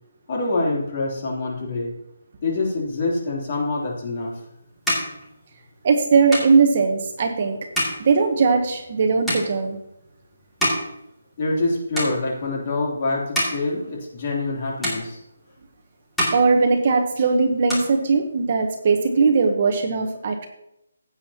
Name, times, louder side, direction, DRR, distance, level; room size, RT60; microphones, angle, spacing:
voice 1, 0.3-1.9 2.4-4.4 11.4-15.2, left 2 dB, 30° left, -2 dB, 3.0 m, -25 dB
sound 1, 4.0-11.7 11.9-12.6 13.1-14.6 14.8-15.7 16.0-17.2 17.5-18.6, equal, ahead, 2.6 m, -30 dB
voice 2, 5.8-7.6 8.0-9.8 16.3-20.5, right 4 dB, 30° right, 5 dB, 1.0 m, -19 dB
15.5 x 8.6 x 2.9 m, 0.83 s
hypercardioid pair, 175°, 0 cm